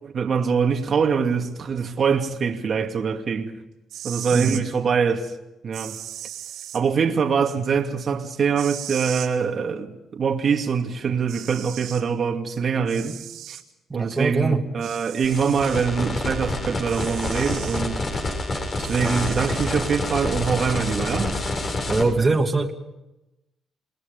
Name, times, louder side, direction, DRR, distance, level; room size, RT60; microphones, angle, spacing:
voice 1, 0.0-3.5 4.0-5.3 5.6-6.0 6.7-13.2 13.5-13.6 13.9-18.0 18.8-21.4, right 6 dB, 50° right, 2.4 m, -24 dB
sound 1, 3.8-4.6 5.7-6.8 8.6-9.3 10.8-10.9 11.3-12.0 12.9-13.6 14.8-15.9 16.8-17.8 18.8-19.8, right 11 dB, 85° right, 3.6 m, -37 dB
voice 2, 13.9-14.7 21.9-22.7, right 3 dB, 20° right, 2.7 m, -22 dB
sound 2, 15.2-22.0, left 2 dB, 40° left, 7.3 m, -28 dB
29.0 x 21.0 x 5.4 m
cardioid pair, 90°, 0 cm